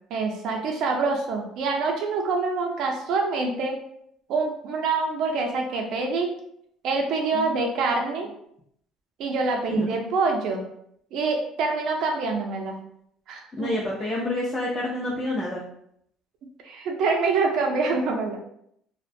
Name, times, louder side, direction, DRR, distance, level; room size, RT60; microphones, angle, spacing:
voice 1, 0.1-3.8 4.3-6.3 6.8-8.3 9.2-10.6 11.1-12.7 13.3-13.7 16.6-18.4, right 4 dB, 65° right, 2 dB, 0.5 m, -25 dB
voice 2, 13.5-15.6, left 1 dB, 25° left, -3 dB, 0.4 m, -28 dB
2.4 x 2.1 x 2.6 m, 0.71 s
cardioid pair, 115°, 0 cm